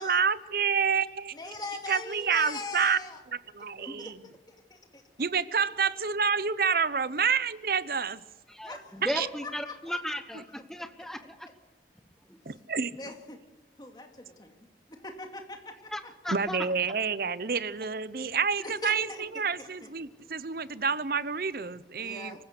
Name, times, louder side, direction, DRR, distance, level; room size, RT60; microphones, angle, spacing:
voice 1, 0.0-1.3 1.9-3.0 3.5-4.2 5.2-8.2 9.0-9.3 12.5-12.9 16.3-22.4, right 6 dB, 55° right, 16 dB, 0.8 m, -28 dB
voice 2, 1.3-3.2 3.8-4.2 4.5-5.0 8.6-9.0 9.4-10.0 10.3-10.4 13.0-13.4 13.8-16.1 18.6-19.2 19.6-19.9 22.0-22.4, left 2 dB, 25° left, 4 dB, 2.4 m, -41 dB
voice 3, 8.5-11.5 12.3-12.4 15.9-16.6, equal, ahead, 8 dB, 1.1 m, -36 dB
25.0 x 16.0 x 6.6 m, 1.1 s
head